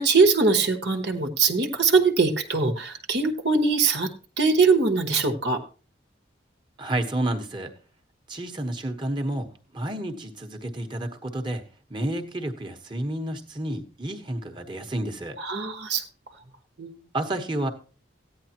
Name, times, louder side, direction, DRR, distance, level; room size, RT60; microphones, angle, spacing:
voice 1, 0.0-4.1 4.4-5.6 15.4-16.0 16.8-16.9, right 4 dB, 60° right, 4 dB, 1.2 m, -22 dB
voice 2, 6.8-7.7 8.3-11.6 11.9-15.4 17.1-17.7, right 1 dB, 25° right, 6 dB, 1.2 m, -30 dB
15.0 x 9.8 x 2.9 m, 0.36 s
head